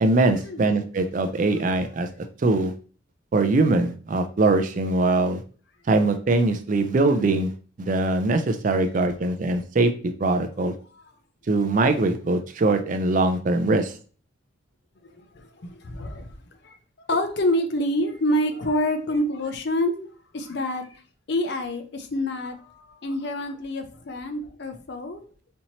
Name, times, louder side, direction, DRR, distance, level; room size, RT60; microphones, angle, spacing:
voice 1, 0.0-2.1 2.4-2.7 3.3-5.4 5.9-7.5 7.8-9.9 10.2-10.7 11.5-13.9, right 2 dB, 40° right, 7 dB, 0.4 m, -22 dB
voice 2, 15.0-16.4 16.6-16.7 17.1-20.1 20.3-21.0 21.3-25.2, left 1 dB, 55° left, 7 dB, 0.5 m, -27 dB
4.3 x 2.8 x 2.8 m, 0.40 s
head